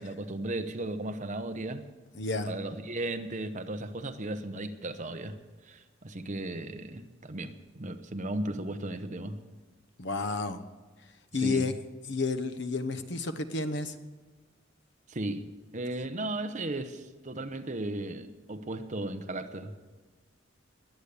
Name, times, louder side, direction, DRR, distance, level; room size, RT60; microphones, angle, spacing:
voice 1, 0.0-1.9 2.5-5.4 5.6-9.4 11.3-11.6 15.1-15.5 15.7-19.8, right 2 dB, 40° right, 9 dB, 0.9 m, -36 dB
voice 2, 2.1-2.6 10.0-10.6 11.3-11.7 12.1-13.9, left 3 dB, 65° left, 10 dB, 1.0 m, -31 dB
21.0 x 8.5 x 6.7 m, 1.3 s
head